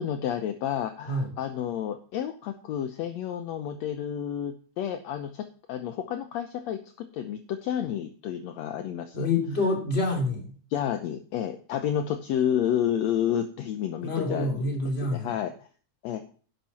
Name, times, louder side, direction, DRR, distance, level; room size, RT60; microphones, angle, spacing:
voice 1, 0.0-9.3 10.7-14.6 15.0-15.5 16.0-16.2, left 10 dB, 70° left, 8 dB, 1.8 m, -30 dB
voice 2, 9.1-10.5 14.0-15.3, left 2 dB, 20° left, 1 dB, 3.0 m, -27 dB
11.0 x 10.5 x 4.3 m, 0.42 s
omnidirectional pair, 3.7 m